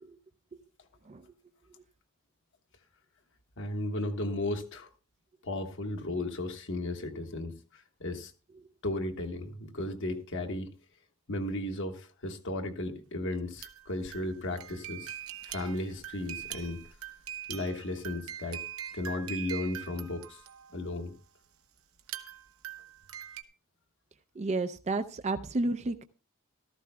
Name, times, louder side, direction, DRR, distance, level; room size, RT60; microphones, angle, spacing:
voice 1, 3.6-4.9 5.4-8.3 8.8-10.7 11.3-15.2 15.4-16.8 17.5-18.6 18.9-20.4 20.7-21.1, left 1 dB, 60° left, 1.3 m, -35 dB
sound 1, 13.3-20.9 22.0-23.4, right 10 dB, 70° right, 0.8 m, -43 dB
voice 2, 24.4-26.0, right 2 dB, 30° right, 0.5 m, -31 dB
15.0 x 13.5 x 2.2 m
head